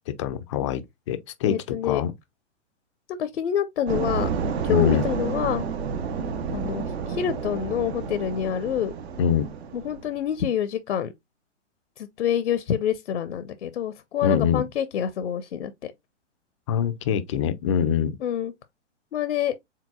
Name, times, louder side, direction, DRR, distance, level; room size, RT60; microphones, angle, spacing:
voice 1, 0.1-2.1 4.7-5.0 9.2-9.5 14.2-14.6 16.7-18.2, left 8 dB, 25° left, 0.3 m, -24 dB
voice 2, 1.4-2.0 3.1-4.3 4.6-5.6 6.5-8.9 9.7-11.1 12.0-15.9 18.2-18.5 19.1-19.6, left 9 dB, 70° left, 0.6 m, -27 dB
sound 1, 3.9-10.2, right 5 dB, 60° right, 0.8 m, -30 dB
4.6 x 3.6 x 2.3 m
figure-of-eight pair, 115°, 36 cm